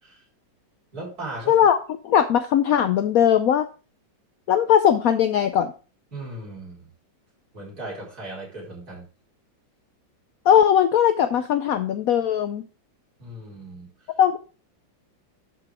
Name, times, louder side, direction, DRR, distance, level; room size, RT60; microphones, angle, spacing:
voice 1, 0.9-1.6 6.1-6.9 7.5-9.1 13.2-13.9, right 2 dB, 50° right, -4 dB, 4.7 m, -37 dB
voice 2, 1.5-1.8 2.0-3.7 4.5-5.7 10.5-12.6 14.2-14.4, left 9 dB, 80° left, 10 dB, 0.8 m, -19 dB
11.5 x 5.5 x 3.5 m, 0.35 s
omnidirectional pair, 2.1 m